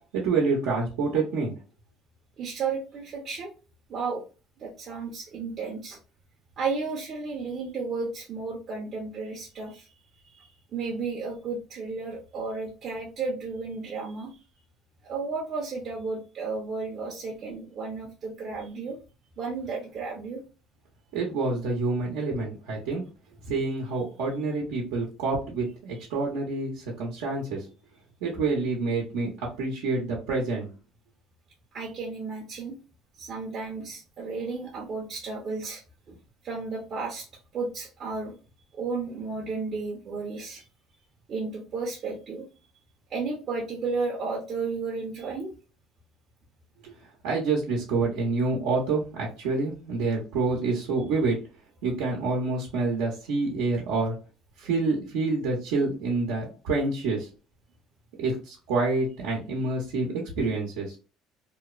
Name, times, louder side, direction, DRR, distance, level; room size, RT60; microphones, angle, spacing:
voice 1, 0.1-1.5 21.1-23.0 23.5-27.6 28.2-30.7 46.8-46.9 47.2-51.4 51.8-54.1 54.6-57.3 58.2-60.9, right 3 dB, 85° right, -3 dB, 0.8 m, -27 dB
voice 2, 2.4-3.5 3.9-4.2 4.6-6.0 6.6-9.9 10.3-14.3 15.0-19.0 19.4-20.4 31.7-32.8 33.2-35.8 36.1-36.2 36.4-37.3 37.5-38.3 38.7-40.7 41.3-42.4 43.1-45.5, right 4 dB, 45° right, -2 dB, 0.7 m, -33 dB
2.9 x 2.0 x 2.3 m, 0.34 s
cardioid pair, 105°, 0 cm